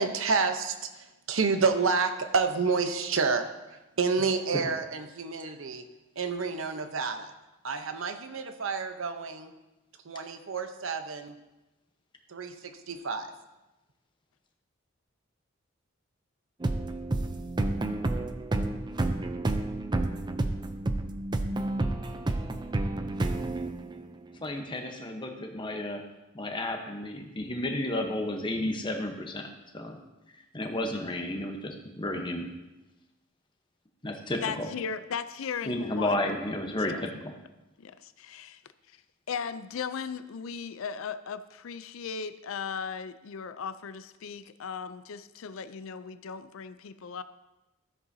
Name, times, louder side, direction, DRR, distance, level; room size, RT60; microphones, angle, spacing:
voice 1, 0.0-5.8 6.2-7.3 7.6-9.5 10.0-11.3 12.3-13.3, right 4 dB, 65° right, 8 dB, 0.8 m, -29 dB
sound 1, 16.6-24.2, right 2 dB, 20° right, 0.4 m, -30 dB
voice 2, 24.4-26.0 26.3-29.5 29.7-30.0 30.5-32.5 34.0-34.7 35.6-37.3, left 1 dB, 20° left, 4 dB, 0.9 m, -32 dB
voice 3, 34.4-36.2 36.9-37.0 37.8-38.6 38.9-39.0 39.3-47.2, left 6 dB, 70° left, 13 dB, 0.4 m, -37 dB
13.0 x 7.6 x 2.7 m, 1.0 s
head